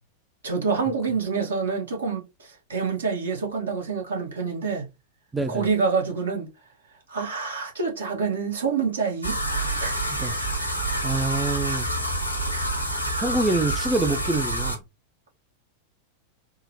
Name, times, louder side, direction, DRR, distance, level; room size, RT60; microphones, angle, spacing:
voice 1, 0.4-4.9 5.5-6.5 7.1-9.4 9.6-10.1 11.1-11.3, right 5 dB, 70° right, 1.3 m, -27 dB
voice 2, 5.3-5.6 10.1-10.4 11.0-11.9 12.5-12.8 13.2-14.8, right 2 dB, 10° right, 0.4 m, -26 dB
sound 1, 9.2-14.8, right 1 dB, 90° left, 0.9 m, -27 dB
3.6 x 2.0 x 2.8 m
figure-of-eight pair, 90°, 0 cm